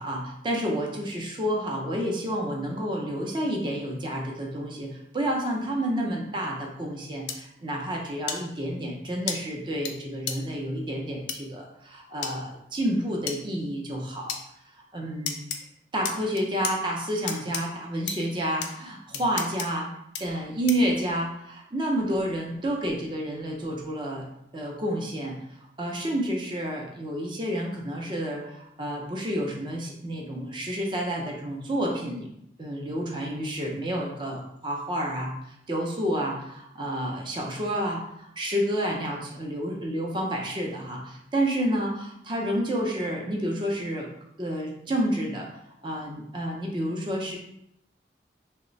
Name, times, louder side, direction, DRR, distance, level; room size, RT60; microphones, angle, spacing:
voice 1, 0.0-14.4 14.9-15.4 15.9-19.9 20.2-24.2 24.5-32.3 32.6-44.1 44.4-45.5 45.8-47.4, equal, 25° right, -1 dB, 0.5 m, -30 dB
sound 1, 7.3-7.4 8.3-8.4 9.3-9.4 9.9-10.0 10.3-10.4 11.3-11.4 12.2-12.3 13.3-13.4 14.3-14.4 15.3-15.6 16.0-16.7 17.3-17.6 18.1-18.2 18.6-18.7 19.1-19.7 20.1-20.2 20.7-20.9, left 7 dB, 75° left, 0.4 m, -31 dB
3.1 x 2.1 x 3.8 m, 0.78 s
head